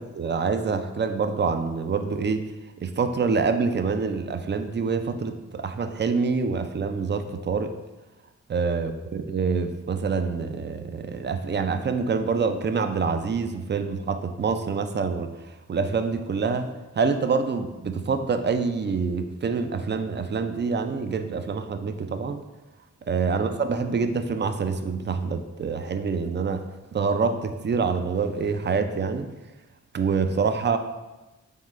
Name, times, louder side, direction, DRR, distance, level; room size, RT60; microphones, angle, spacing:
voice 1, 0.0-2.4 2.8-7.7 8.5-15.3 15.7-16.7 17.0-22.4 23.1-26.6 26.9-29.3 29.9-30.8, right 5 dB, 35° right, 8 dB, 0.4 m, -26 dB
3.7 x 3.6 x 3.2 m, 1.1 s
cardioid pair, 40°, 32 cm